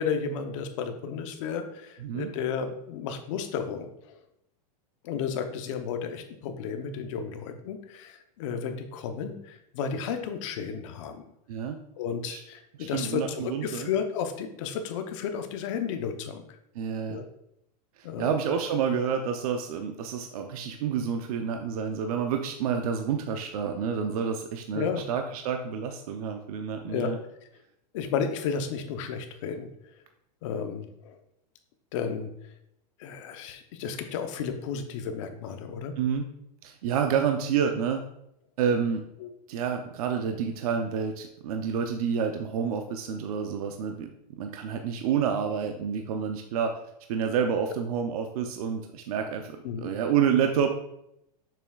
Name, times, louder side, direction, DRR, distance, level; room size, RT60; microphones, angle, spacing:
voice 1, 0.0-4.1 5.0-11.2 12.0-16.4 17.1-17.3 18.0-18.3 24.7-25.0 26.8-27.1 27.9-29.7 30.4-31.2 31.9-32.3 33.0-35.9 39.2-39.3 49.6-49.9, left 6 dB, 50° left, 6 dB, 0.8 m, -33 dB
voice 2, 12.8-13.9 16.7-17.2 18.2-27.2 36.0-36.3 36.6-38.0 38.6-39.0 39.5-44.1 44.4-46.8 47.1-50.7, right 7 dB, 60° right, 5 dB, 0.6 m, -29 dB
6.9 x 5.8 x 2.3 m, 0.78 s
supercardioid pair, 165°, 21 cm